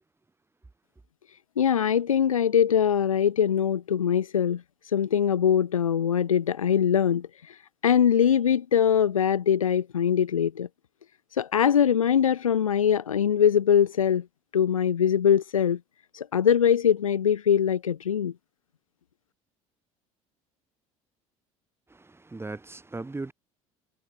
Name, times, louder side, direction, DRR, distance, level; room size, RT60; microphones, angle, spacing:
voice 1, 1.6-7.6 7.8-10.7 11.3-14.2 14.5-15.8 16.1-18.3, left 8 dB, 75° left, 2.0 m, -22 dB
voice 2, 21.9-23.3, right 3 dB, 15° right, 5.6 m, -38 dB
figure-of-eight pair, 60°, 17 cm